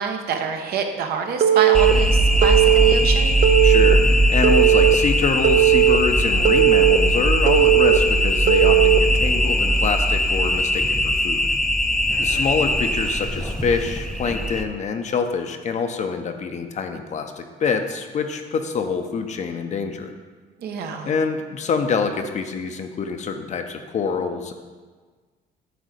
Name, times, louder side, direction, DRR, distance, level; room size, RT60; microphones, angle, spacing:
voice 1, 0.0-3.3 12.1-12.5 20.6-21.1, right 6 dB, 65° right, 4 dB, 1.0 m, -27 dB
Telephone, 1.4-1.9 2.4-2.9 3.4-3.9 4.4-4.9 5.4-6.0 6.4-7.0 7.5-8.0 8.5-9.0, right 13 dB, 45° right, 0.5 m, -16 dB
sound 1, 1.7-14.6, equal, 5° left, 0.6 m, -20 dB
voice 2, 3.6-11.5 12.2-20.1 21.0-24.5, left 5 dB, 45° left, 6 dB, 0.8 m, -26 dB
9.3 x 3.6 x 6.6 m, 1.4 s
cardioid pair, 110°, 17 cm